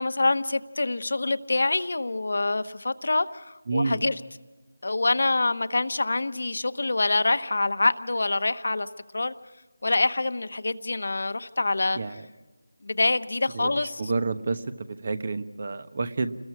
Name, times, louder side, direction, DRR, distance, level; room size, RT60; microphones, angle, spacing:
voice 1, 0.0-4.2 4.8-8.9 9.1-9.3 9.8-12.0 12.8-14.1, left 2 dB, 65° left, 11 dB, 1.1 m, -25 dB
voice 2, 3.7-4.0 11.9-12.2 13.5-16.3, right 3 dB, 45° right, 12 dB, 1.2 m, -29 dB
29.0 x 21.5 x 4.9 m, 1.2 s
figure-of-eight pair, 170°, 0 cm